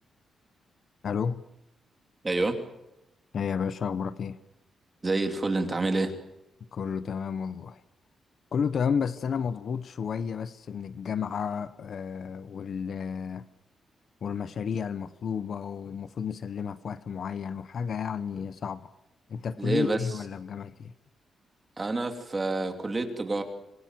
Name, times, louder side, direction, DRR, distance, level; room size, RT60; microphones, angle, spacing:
voice 1, 1.0-1.4 3.3-4.4 6.7-7.8 8.5-13.5 14.2-18.9 19.3-20.9, left 6 dB, 50° left, 0.9 m, -32 dB
voice 2, 2.2-2.6 5.0-6.1 19.6-20.1 21.8-23.4, right 2 dB, 20° right, 2.9 m, -28 dB
27.0 x 21.5 x 7.6 m
wide cardioid pair, 170°, 0 cm